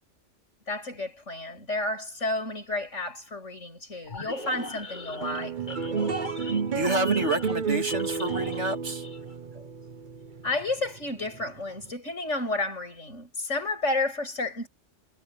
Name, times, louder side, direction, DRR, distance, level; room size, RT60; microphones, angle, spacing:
voice 1, 0.7-5.6 9.5-9.6 10.4-14.7, left 2 dB, 85° left, 7.9 m, -31 dB
sound 1, 4.1-8.8 9.0-9.3, left 2 dB, 40° left, 2.4 m, -39 dB
sound 2, 5.2-11.9, right 6 dB, 45° right, 1.1 m, -31 dB
voice 2, 6.7-9.0, right 2 dB, 70° right, 2.8 m, -28 dB
omnidirectional pair, 1.2 m